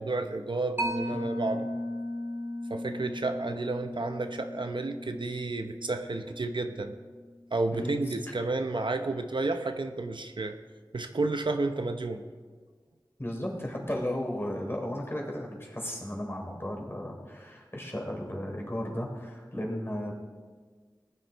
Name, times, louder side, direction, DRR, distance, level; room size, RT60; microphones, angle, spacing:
voice 1, 0.0-1.7 2.7-6.9 7.5-10.6 10.9-12.2, right 3 dB, 70° right, 7 dB, 0.8 m, -31 dB
Mallet percussion, 0.8-7.8, left 1 dB, 25° right, 2.9 m, -37 dB
voice 2, 13.2-20.1, left 1 dB, 30° left, -1 dB, 3.4 m, -35 dB
19.0 x 9.8 x 4.1 m, 1.5 s
wide cardioid pair, 45°, 8 cm